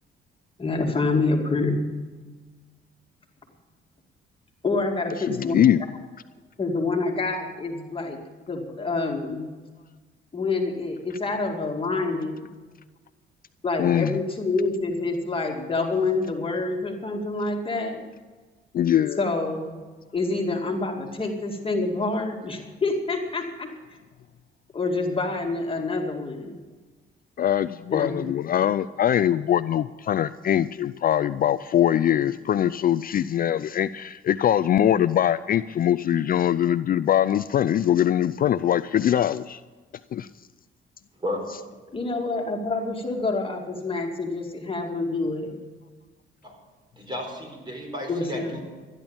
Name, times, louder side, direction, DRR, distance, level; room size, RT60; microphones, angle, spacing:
voice 1, 0.6-1.8 4.6-5.6 6.6-9.5 10.3-12.4 13.6-18.1 19.2-19.8 20.1-23.7 24.7-26.6 27.9-28.3 41.9-45.6 48.1-48.6, left 3 dB, 25° left, 2 dB, 2.1 m, -27 dB
voice 2, 5.3-5.8 13.8-14.2 18.7-19.3 27.4-39.6 40.1-40.3, left 10 dB, 45° left, 14 dB, 0.4 m, -22 dB
voice 3, 47.0-48.6, left 1 dB, 25° right, 2 dB, 4.5 m, -33 dB
13.5 x 10.5 x 7.1 m, 1.4 s
cardioid pair, 90°, 20 cm